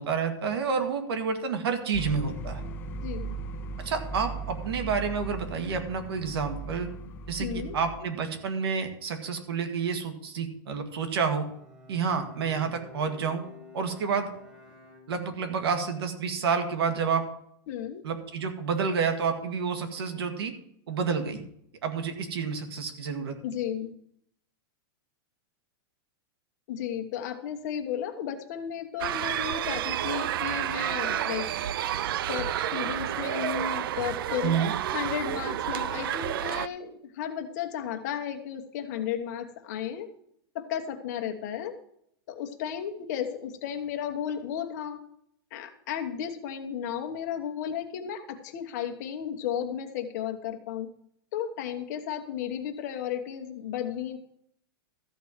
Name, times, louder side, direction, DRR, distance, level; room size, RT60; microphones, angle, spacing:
voice 1, 0.0-2.6 3.8-6.9 7.3-11.5 11.9-13.4 13.7-14.3 15.1-17.3 18.0-20.5 20.9-21.4 21.8-23.4 34.4-34.7, right 5 dB, 80° right, 6 dB, 2.0 m, -29 dB
sound 1, 1.9-8.0, right 3 dB, 15° left, 0.4 m, -37 dB
voice 2, 3.0-3.4 7.4-7.8 17.7-18.0 23.4-24.0 26.7-31.5 32.3-34.6 34.9-40.1 40.5-41.8 42.3-45.0 45.5-50.9 51.3-54.2, left 9 dB, 45° left, 4 dB, 1.2 m, -34 dB
Bowed string instrument, 11.2-15.6, left 3 dB, 5° right, 1.7 m, -50 dB
sound 2, 29.0-36.7, right 11 dB, 60° right, 0.4 m, -30 dB
13.5 x 4.6 x 7.3 m, 0.71 s
supercardioid pair, 170°, 13 cm